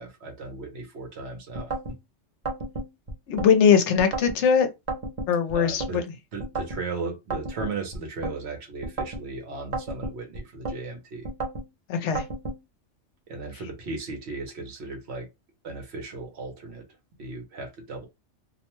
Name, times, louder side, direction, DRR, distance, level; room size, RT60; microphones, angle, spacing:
voice 1, 0.0-1.7 5.5-6.0 6.3-11.3 13.3-15.3 15.6-16.8 17.2-18.1, right 3 dB, 60° right, 1.0 m, -36 dB
sound 1, 1.5-2.0 2.5-3.5 4.0-4.4 4.9-5.9 6.4-6.8 7.3-8.4 8.8-9.2 9.7-10.8 11.2-11.7 12.2-12.6, right 2 dB, 45° right, 0.6 m, -32 dB
voice 2, 3.3-4.7 5.3-6.0 11.9-12.2, left 7 dB, 70° left, 0.9 m, -20 dB
2.6 x 2.1 x 2.9 m
omnidirectional pair, 1.3 m